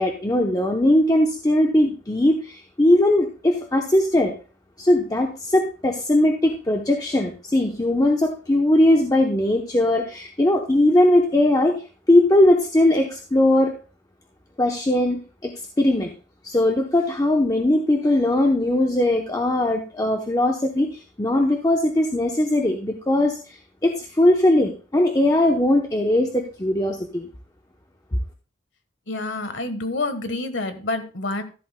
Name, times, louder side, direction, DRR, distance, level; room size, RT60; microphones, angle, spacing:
voice 1, 0.0-4.3 4.8-11.7 12.1-13.7 14.6-15.5 15.8-16.1 16.4-27.3, left 1 dB, 20° left, 2 dB, 0.8 m, -20 dB
voice 2, 29.1-31.4, left 2 dB, 85° left, 9 dB, 1.4 m, -28 dB
14.0 x 11.5 x 2.2 m, 0.35 s
head